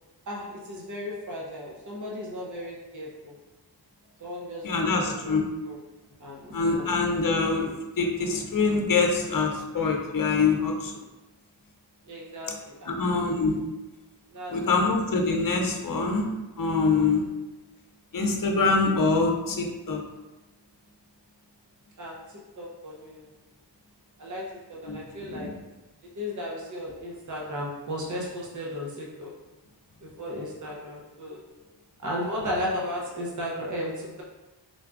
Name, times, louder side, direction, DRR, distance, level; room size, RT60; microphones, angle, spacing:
voice 1, 0.3-3.3 4.2-5.4 5.6-5.8 6.2-6.9 12.1-13.0 14.3-14.7 15.0-15.3 22.0-23.3 24.2-25.5 26.1-29.3 30.0-31.4 32.0-34.2, left 1 dB, 45° right, -4 dB, 0.9 m, -35 dB
voice 2, 4.6-5.4 6.5-7.7 8.0-10.9 12.9-13.6 14.5-16.3 16.6-17.2 18.1-20.0 24.9-25.0 25.3-25.5, left 4 dB, 50° left, 2 dB, 0.7 m, -24 dB
3.9 x 2.4 x 3.5 m, 1.1 s
wide cardioid pair, 75°, 44 cm